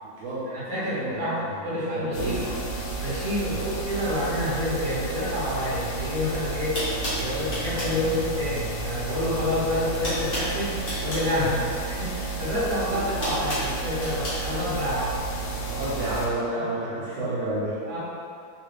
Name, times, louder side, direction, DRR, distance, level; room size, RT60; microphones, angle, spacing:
voice 1, 0.0-0.5 0.9-2.6 3.5-3.6 11.3-11.7 15.7-17.8, right 1 dB, 85° right, -9 dB, 1.6 m, -30 dB
voice 2, 0.5-2.5 3.0-6.8 7.2-10.8 11.0-11.5 12.0-15.1 17.9-18.0, left 1 dB, 55° right, -10 dB, 1.6 m, -28 dB
sound 1, 2.1-16.3, right 3 dB, 70° left, 0.9 m, -32 dB
sound 2, 6.2-6.3 6.7-8.0 9.2-9.5 9.7-11.3 12.5-14.4, left 1 dB, 40° left, 0.9 m, -32 dB
3.8 x 2.4 x 3.2 m, 2.3 s
omnidirectional pair, 2.2 m